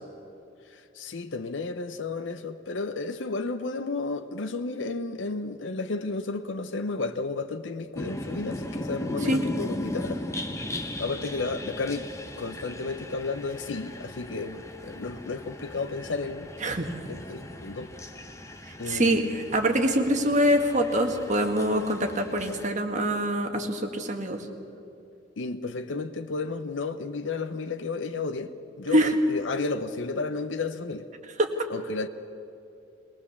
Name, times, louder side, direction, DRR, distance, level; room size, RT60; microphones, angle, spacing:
voice 1, 0.7-10.2 11.0-12.1 12.4-16.5 17.1-17.9 18.8-19.4 25.4-28.5 28.8-31.1 31.7-32.1, left 3 dB, 75° left, 0.8 m, -32 dB
sound 1, 8.0-22.7, left 1 dB, 15° left, 1.2 m, -38 dB
voice 2, 18.9-24.4 28.9-29.2 31.4-31.5, right 1 dB, 40° right, 1.8 m, -24 dB
21.5 x 19.5 x 7.1 m
head